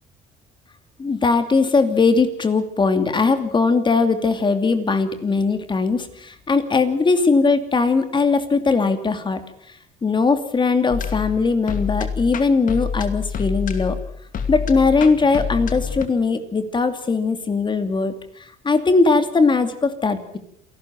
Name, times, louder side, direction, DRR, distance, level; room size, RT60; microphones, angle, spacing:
voice 1, 1.0-9.4 10.0-14.0 14.5-18.1 18.6-20.4, left 4 dB, 30° left, 9 dB, 2.7 m, -19 dB
sound 1, 10.9-16.0, left 6 dB, 50° left, 2.6 m, -27 dB
27.5 x 13.0 x 7.7 m, 0.66 s
cardioid pair, 110°, 17 cm